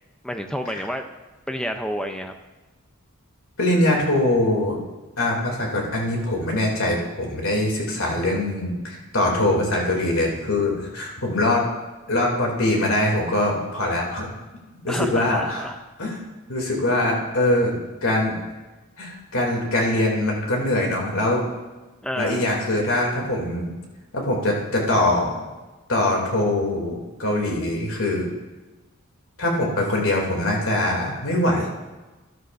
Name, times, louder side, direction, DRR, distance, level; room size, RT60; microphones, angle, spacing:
voice 1, 0.2-1.1 1.5-2.4 14.9-15.8 22.0-22.5, equal, 5° left, 5 dB, 0.6 m, -29 dB
voice 2, 3.6-4.8 5.2-11.6 12.1-14.3 14.8-15.6 16.0-16.2 16.5-18.3 19.0-21.4 22.2-23.7 24.1-25.4 25.9-28.3 29.4-31.7, left 1 dB, 70° left, -1 dB, 2.7 m, -23 dB
13.0 x 12.5 x 2.6 m, 1.2 s
head